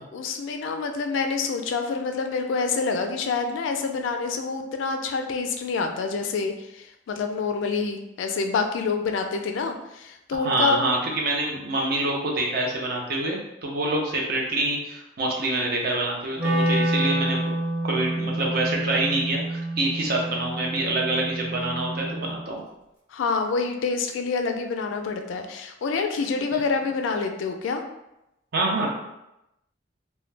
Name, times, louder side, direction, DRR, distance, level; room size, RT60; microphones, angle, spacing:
voice 1, 0.1-10.8 23.1-27.8, left 4 dB, 80° left, 5 dB, 0.3 m, -27 dB
voice 2, 10.4-17.4 17.8-22.6 28.5-28.9, right 2 dB, 55° right, -1 dB, 0.5 m, -26 dB
Wind instrument woodwind instrument, 16.4-22.4, right 1 dB, 5° right, 0.6 m, -28 dB
2.1 x 2.0 x 3.2 m, 0.89 s
head